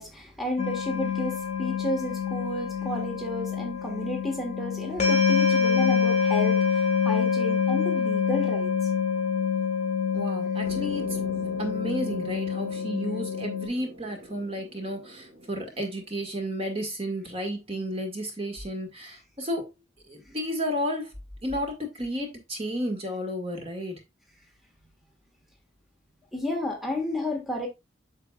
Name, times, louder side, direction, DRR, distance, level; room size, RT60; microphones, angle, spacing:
voice 1, 0.0-8.7 26.3-27.7, left 1 dB, ahead, 1.6 m, -32 dB
sound 1, 0.6-13.7, left 6 dB, 35° left, 2.2 m, -26 dB
voice 2, 10.1-11.3 11.6-19.7 20.1-21.1 21.4-24.0, equal, 30° right, 1.8 m, -32 dB
sound 2, 10.6-16.0, right 1 dB, 60° right, 2.8 m, -44 dB
8.3 x 6.5 x 2.4 m
head